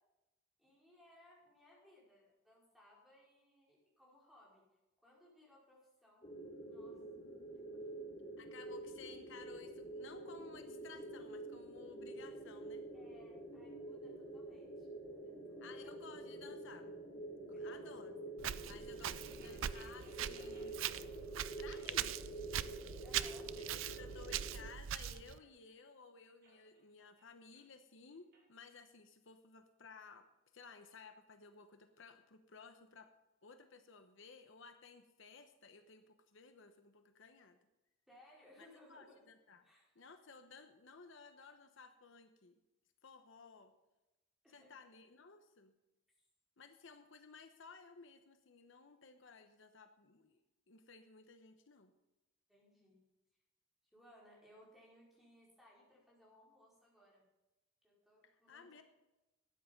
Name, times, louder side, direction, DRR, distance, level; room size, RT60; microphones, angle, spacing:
voice 1, 0.6-4.6 5.0-6.3 6.7-7.0 7.5-7.6 12.9-15.8 17.5-18.2 23.0-23.5 38.1-39.3 39.6-40.1 44.4-44.7 52.5-53.0 53.9-57.2 57.8-58.8, left 1 dB, ahead, -5 dB, 4.9 m, -65 dB
sound 1, 6.2-24.7, right 2 dB, 30° left, 2.7 m, -48 dB
voice 2, 8.4-12.8 15.6-16.9 17.5-18.2 18.7-21.1 21.6-22.2 23.6-30.3 30.5-33.1 33.4-37.6 38.6-39.6 39.9-42.5 43.0-43.7 44.5-45.7 46.6-51.9 58.2-58.8, left 5 dB, 70° left, 7 dB, 1.0 m, -57 dB
Walk footsteps, 18.4-25.4, right 10 dB, 70° right, 0.5 m, -42 dB
sound 2, 19.4-21.1 21.7-22.7 22.9-23.5 24.0-25.8 26.3-28.5, right 2 dB, 55° right, 3.3 m, -66 dB
13.0 x 9.7 x 5.3 m, 0.98 s
head